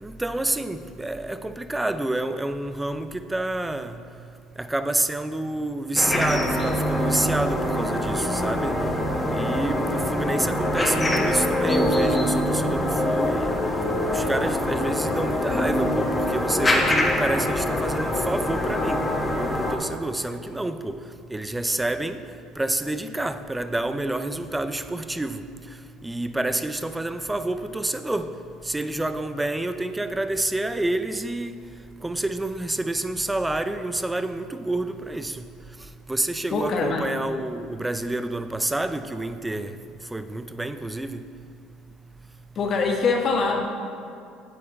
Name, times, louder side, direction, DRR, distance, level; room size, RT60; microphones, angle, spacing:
voice 1, 0.0-4.0 4.6-8.8 9.3-13.6 14.1-21.0 21.3-22.2 22.6-25.4 26.0-28.3 28.7-31.5 32.0-35.4 36.1-39.7 40.1-41.2, right 2 dB, 10° right, 0.5 m, -28 dB
sound 1, 6.0-19.8, left 1 dB, 20° left, 1.3 m, -24 dB
voice 2, 36.5-37.1 42.5-43.7, left 4 dB, 50° left, 1.3 m, -23 dB
8.9 x 8.5 x 4.3 m
hypercardioid pair, 65°, 0 cm